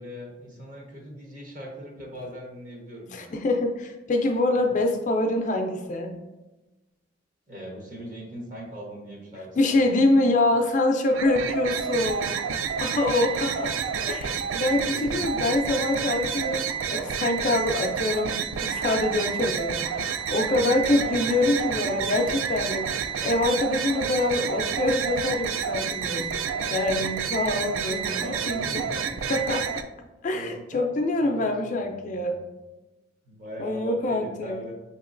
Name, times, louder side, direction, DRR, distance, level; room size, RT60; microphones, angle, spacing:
voice 1, 0.0-3.4 4.5-4.7 7.5-10.4 13.3-13.7 14.7-15.1 20.5-21.2 21.9-22.0 28.2-29.4 30.3-30.9 31.2-32.4 33.2-34.7, equal, 40° right, -2 dB, 1.1 m, -40 dB
voice 2, 3.1-6.2 9.6-12.4 12.8-13.7 14.1-22.9 23.2-28.8 29.2-29.6 30.2-32.4 33.6-34.6, left 2 dB, 40° left, 3 dB, 0.3 m, -25 dB
sound 1, 11.1-29.8, right 7 dB, 80° right, 0.3 m, -29 dB
5.4 x 2.9 x 2.5 m, 1.1 s
head